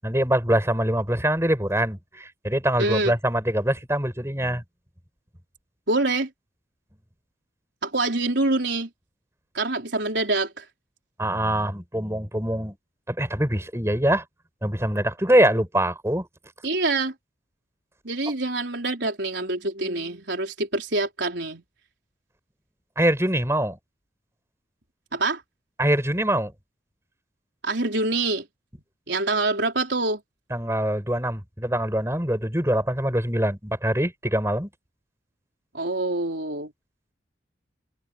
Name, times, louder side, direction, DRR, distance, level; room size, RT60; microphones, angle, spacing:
voice 1, 0.0-4.6 11.2-12.7 13.1-14.2 14.6-16.3 23.0-23.8 25.8-26.5 30.5-34.7, right 1 dB, 15° right, 6.8 m, -24 dB
voice 2, 2.8-3.2 5.9-6.3 7.8-8.9 9.5-10.6 16.6-17.1 18.0-21.6 25.1-25.4 27.6-28.4 29.1-30.2 35.7-36.7, right 2 dB, 70° right, 4.0 m, -25 dB
head